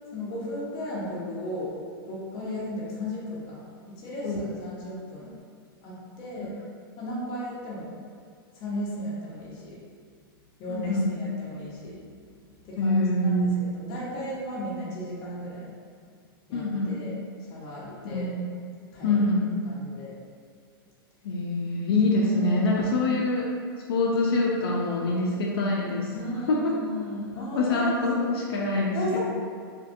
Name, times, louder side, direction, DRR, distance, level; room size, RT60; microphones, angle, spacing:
voice 1, 0.1-1.7 2.1-5.3 5.8-6.5 7.0-7.9 8.5-9.8 10.6-12.0 12.6-13.3 13.7-15.7 16.5-17.1 17.4-18.3 18.9-19.2 19.6-20.1 22.2-22.7 26.1-28.0 28.3-28.5 28.9-29.2, equal, 35° left, -6 dB, 0.8 m, -35 dB
voice 2, 10.7-11.1 12.8-13.5 16.5-17.0 18.0-18.5 19.0-19.5 21.2-23.5 23.9-26.8 27.6-29.2, left 2 dB, 80° left, -3 dB, 0.4 m, -25 dB
2.5 x 2.5 x 2.5 m, 2.1 s
hypercardioid pair, 145°, 12 cm